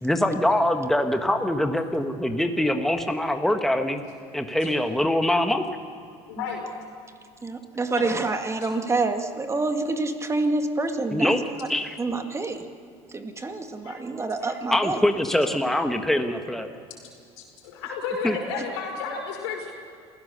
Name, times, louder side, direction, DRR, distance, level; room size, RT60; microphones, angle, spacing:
voice 1, 0.0-4.0 4.3-5.6 11.1-11.4 11.7-11.9 14.7-16.7 18.2-18.4, left 1 dB, ahead, 5 dB, 1.4 m, -23 dB
voice 2, 6.3-6.7 8.0-8.2 13.8-14.0 14.4-14.5 17.4-19.7, left 5 dB, 85° left, 2 dB, 5.0 m, -32 dB
voice 3, 7.4-11.7 12.0-12.6 13.1-15.0, right 3 dB, 20° right, 6 dB, 1.9 m, -27 dB
27.5 x 16.0 x 6.8 m, 2.3 s
supercardioid pair, 90°, 14 cm